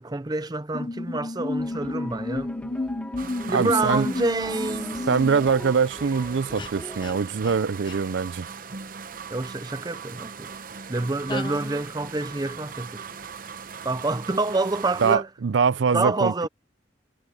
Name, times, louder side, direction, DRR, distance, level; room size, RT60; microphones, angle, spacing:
voice 1, 0.0-2.5 3.5-5.1 9.3-10.5 10.9-13.1 13.8-15.3 15.9-16.5, right 2 dB, 20° right, 0.6 m, -27 dB
sound 1, 0.7-5.5 6.6-6.7 7.0-7.1 7.4-7.6 7.9-8.0 11.3-11.8, left 2 dB, 25° left, 0.6 m, -32 dB
sound 2, 1.6-7.2, equal, 10° left, 2.0 m, -42 dB
sound 3, 3.2-15.2, right 6 dB, 50° right, 0.9 m, -40 dB
voice 2, 3.5-4.1 5.1-8.5 15.0-16.3, right 5 dB, 85° right, 0.5 m, -23 dB
head